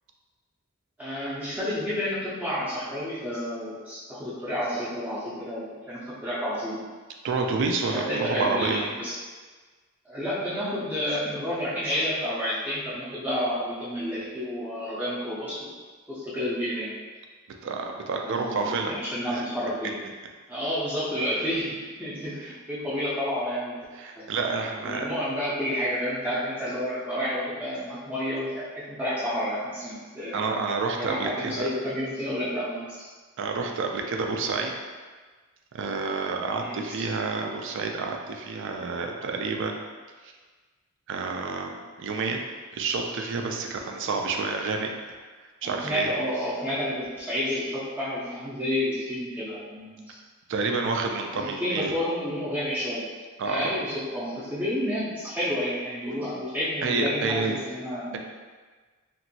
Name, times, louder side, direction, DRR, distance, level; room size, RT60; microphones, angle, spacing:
voice 1, 1.0-6.8 7.8-9.1 10.0-15.7 16.1-16.9 18.1-20.0 20.5-23.8 24.1-24.3 24.8-30.4 31.0-33.1 36.6-37.0 45.6-50.2 51.3-53.0 53.4-58.2, equal, 10° right, -10 dB, 0.5 m, -30 dB
voice 2, 7.2-8.9 17.6-19.0 19.3-19.4 23.9-25.1 30.3-31.7 33.4-34.7 35.7-39.8 41.1-42.5 42.7-45.2 45.6-46.1 50.5-51.9 53.4-53.8 56.8-57.6, right 4 dB, 60° right, 2 dB, 0.4 m, -29 dB
2.9 x 2.5 x 2.7 m, 1.4 s
head